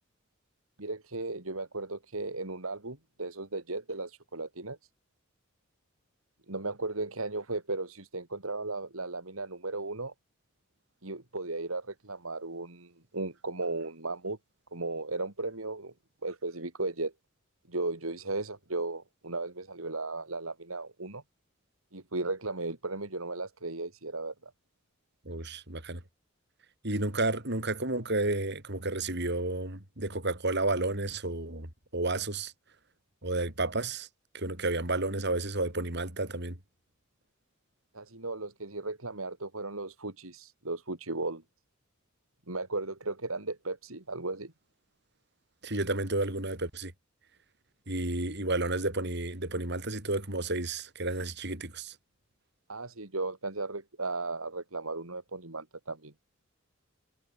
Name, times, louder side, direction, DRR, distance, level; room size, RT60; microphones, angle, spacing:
voice 1, 0.8-4.8 6.5-10.1 11.0-14.4 14.7-15.9 16.2-17.1 17.7-21.2 21.9-24.5 37.9-41.4 42.5-44.5 52.7-56.1, right 3 dB, 90° right, 3.4 m, -36 dB
voice 2, 25.3-26.0 26.8-31.7 31.9-32.5 33.2-34.1 34.3-36.6 45.6-46.9 47.9-51.9, right 2 dB, 55° right, 5.8 m, -31 dB
head